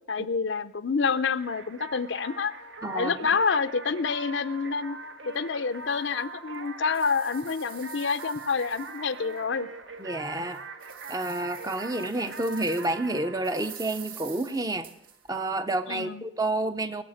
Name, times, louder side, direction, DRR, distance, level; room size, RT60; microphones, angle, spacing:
voice 1, 0.1-2.5 2.9-5.0 5.3-9.7 15.9-16.2, left 5 dB, 70° left, 13 dB, 0.6 m, -28 dB
sound 1, 1.4-14.9, right 2 dB, 70° right, 1.1 m, -42 dB
voice 2, 2.8-3.2 10.0-10.7 11.1-14.9 15.3-17.0, right 2 dB, 20° right, 10 dB, 0.6 m, -29 dB
sound 2, 5.3-5.4 5.9-6.0 6.5-9.4 9.8-9.9 10.4-13.1 13.4-15.4, right 8 dB, 45° right, 1.7 m, -47 dB
21.0 x 7.3 x 6.4 m, 0.84 s
head